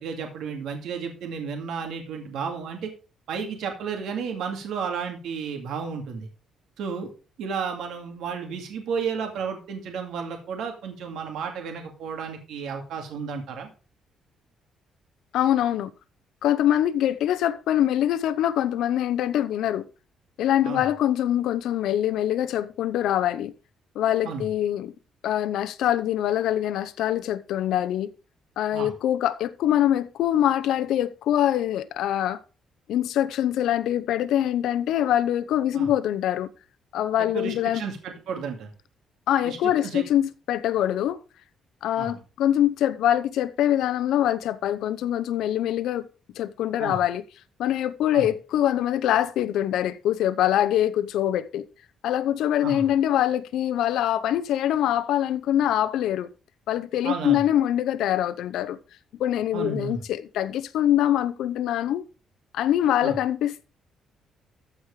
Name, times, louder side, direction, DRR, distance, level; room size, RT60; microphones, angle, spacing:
voice 1, 0.0-2.9 3.3-6.3 6.8-7.1 7.4-13.7 20.6-20.8 24.2-24.5 28.7-28.9 35.7-35.9 37.3-38.7 39.4-40.0 42.0-42.2 46.8-47.0 48.1-48.2 52.6-52.8 57.0-57.4 59.5-60.0 63.0-63.1, right 6 dB, 75° right, 2.4 m, -32 dB
voice 2, 15.3-15.9 16.4-19.8 20.4-23.5 23.9-24.9 25.2-28.1 28.6-32.4 32.9-36.5 36.9-37.8 39.3-41.2 41.8-46.1 46.4-47.2 47.6-51.7 52.0-56.3 56.7-58.8 59.2-62.0 62.5-63.6, left 11 dB, 80° left, 0.7 m, -24 dB
14.0 x 4.8 x 4.9 m
cardioid pair, 145°, 0 cm